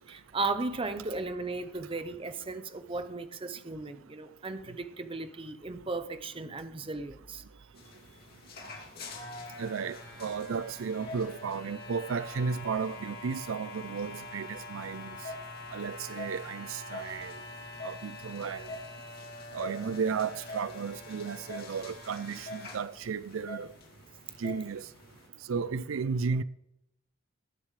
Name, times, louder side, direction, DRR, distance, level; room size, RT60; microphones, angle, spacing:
voice 1, 0.0-7.4, right 3 dB, 25° right, 0.7 m, -36 dB
sound 1, 7.8-25.3, left 2 dB, 50° left, 2.5 m, -44 dB
voice 2, 9.6-15.2 15.7-17.4 17.8-18.7 19.5-23.7 24.4-24.9 25.5-26.4, right 5 dB, 85° right, 0.5 m, -34 dB
19.0 x 10.0 x 3.3 m
head